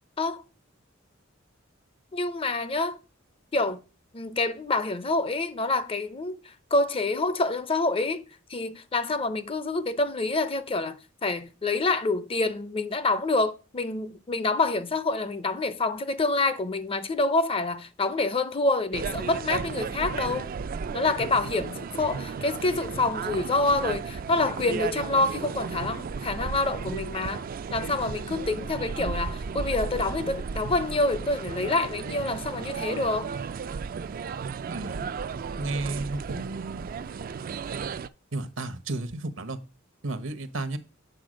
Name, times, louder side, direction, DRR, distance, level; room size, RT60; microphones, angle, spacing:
voice 1, 2.1-3.0 3.5-3.8 4.1-6.4 6.7-8.2 8.5-20.5 20.9-27.4 27.7-33.3, left 2 dB, 30° left, 0.5 m, -27 dB
sound 1, 18.9-38.1, right 5 dB, 45° right, 0.3 m, -34 dB
voice 2, 34.7-35.1 35.6-36.8 38.3-39.6 40.0-40.8, right 2 dB, 70° right, 0.9 m, -33 dB
7.8 x 4.5 x 6.2 m
head